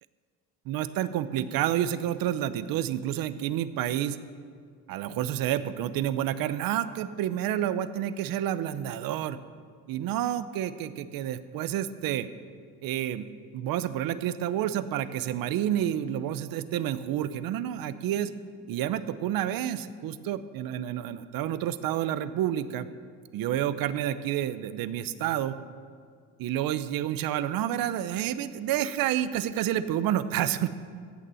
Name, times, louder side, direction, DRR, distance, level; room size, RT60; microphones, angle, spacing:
voice 1, 0.7-4.2 4.9-9.4 9.9-12.3 12.8-18.3 18.7-22.9 23.3-25.5 26.4-30.7, right 11 dB, 75° right, 13 dB, 0.7 m, -29 dB
16.5 x 6.9 x 7.6 m, 2.1 s
cardioid pair, 150°, 35 cm